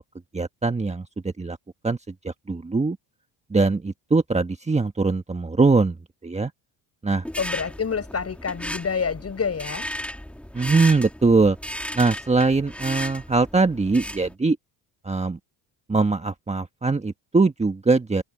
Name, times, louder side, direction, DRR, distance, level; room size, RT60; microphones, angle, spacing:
voice 1, 0.3-1.1 1.4-1.6 1.8-3.0 3.5-6.0 6.2-6.5 7.0-7.2 10.5-11.6 11.9-14.6 15.0-15.4 15.9-18.2, right 3 dB, 15° right, 1.4 m, -22 dB
sound 1, 7.2-14.3, equal, 5° left, 2.0 m, -35 dB
voice 2, 7.4-9.9, left 6 dB, 35° left, 6.5 m, -27 dB
open air
cardioid pair, 90°, 43 cm